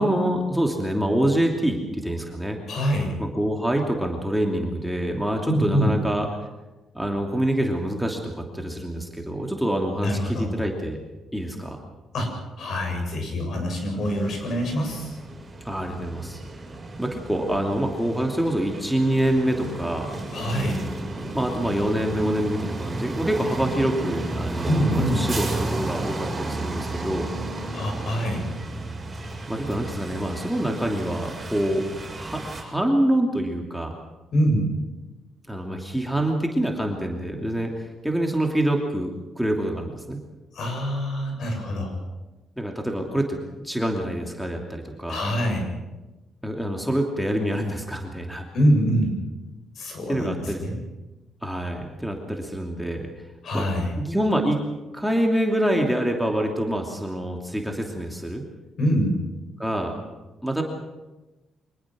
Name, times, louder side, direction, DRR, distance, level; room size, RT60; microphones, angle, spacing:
voice 1, 0.0-2.6 3.2-6.3 6.9-11.0 11.3-11.8 15.6-16.4 17.0-20.1 21.3-27.3 29.5-31.8 32.2-34.0 35.5-37.7 38.0-40.2 42.6-45.2 46.4-48.4 50.1-50.7 51.4-53.1 53.5-53.7 54.0-54.6 54.9-58.4 59.6-59.9 60.4-60.6, right 1 dB, ahead, 1 dB, 2.9 m, -26 dB
voice 2, 2.7-3.1 5.5-5.9 10.0-10.5 12.1-12.3 12.6-15.2 20.3-20.8 24.7-25.3 27.7-28.5 34.3-34.7 40.5-41.9 45.1-45.7 48.5-49.2 49.8-50.8 53.4-53.9 58.8-59.1, equal, 60° left, 3 dB, 7.3 m, -24 dB
sound 1, 14.0-32.6, right 2 dB, 25° right, 6.8 m, -33 dB
24.5 x 19.5 x 6.3 m, 1.1 s
cardioid pair, 110°, 0 cm